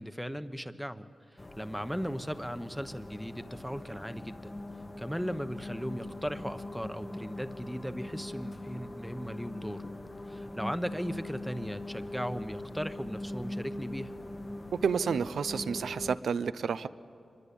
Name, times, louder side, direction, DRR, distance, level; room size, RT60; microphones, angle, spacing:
voice 1, 0.0-4.5 5.0-9.8 10.3-14.1, equal, ahead, 10 dB, 1.0 m, -37 dB
sound 1, 1.4-16.2, left 1 dB, 25° left, 1.0 m, -42 dB
voice 2, 14.8-16.9, right 6 dB, 85° right, 14 dB, 0.6 m, -30 dB
25.0 x 21.5 x 8.6 m, 2.6 s
cardioid pair, 75°, 0 cm